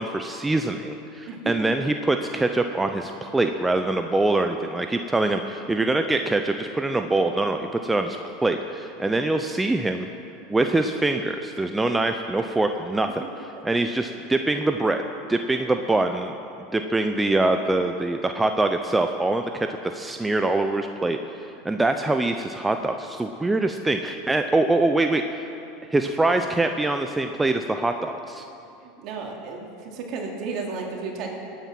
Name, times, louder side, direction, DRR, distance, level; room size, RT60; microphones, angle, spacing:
voice 1, 0.0-10.1 10.5-13.2 13.6-15.0 15.3-16.4 16.7-19.7 19.9-21.2 21.6-25.2 25.9-28.4, right 2 dB, 10° right, 6 dB, 0.7 m, -24 dB
voice 2, 28.8-31.3, right 4 dB, 55° right, 0 dB, 2.9 m, -33 dB
18.0 x 9.1 x 6.1 m, 2.6 s
hypercardioid pair, 100°, 0 cm